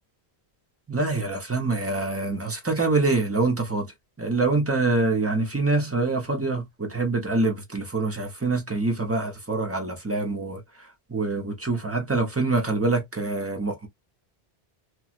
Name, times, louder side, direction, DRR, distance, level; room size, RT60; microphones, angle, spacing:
voice 1, 0.9-3.9 4.2-13.9, right 3 dB, 15° right, 0.8 m, -25 dB
3.0 x 2.4 x 2.4 m
omnidirectional pair, 1.1 m